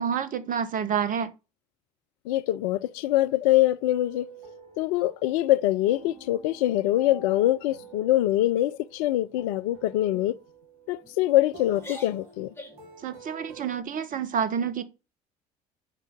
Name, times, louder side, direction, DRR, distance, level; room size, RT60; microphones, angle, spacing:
voice 1, 0.0-1.3 13.0-14.8, right 7 dB, 45° right, 1.3 m, -28 dB
voice 2, 2.3-4.3 4.8-10.3 10.9-12.5, left 15 dB, 65° left, 0.6 m, -24 dB
sound 1, 3.8-13.8, right 3 dB, 65° right, 3.6 m, -49 dB
sound 2, 6.0-6.6 7.0-7.3 7.6-7.9 8.3-8.6 9.3-9.6 10.1-10.3 11.0-11.4 11.7-12.9, left 1 dB, 10° left, 3.9 m, -47 dB
7.1 x 5.7 x 7.0 m
figure-of-eight pair, 60°, 20 cm